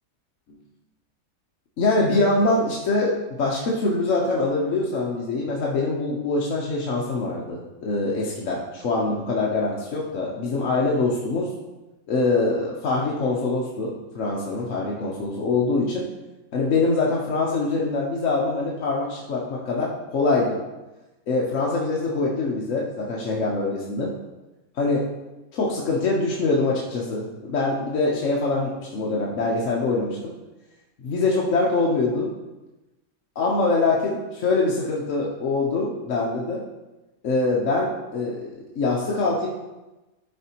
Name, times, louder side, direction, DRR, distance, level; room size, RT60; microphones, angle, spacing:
voice 1, 1.8-3.1 3.4-11.5 12.1-16.0 16.5-20.6 21.3-24.1 24.7-25.0 25.5-30.3 31.0-32.3 33.4-36.6 37.2-39.5, left 3 dB, 55° left, -3 dB, 1.1 m, -24 dB
11.5 x 4.3 x 2.9 m, 1.1 s
omnidirectional pair, 1.8 m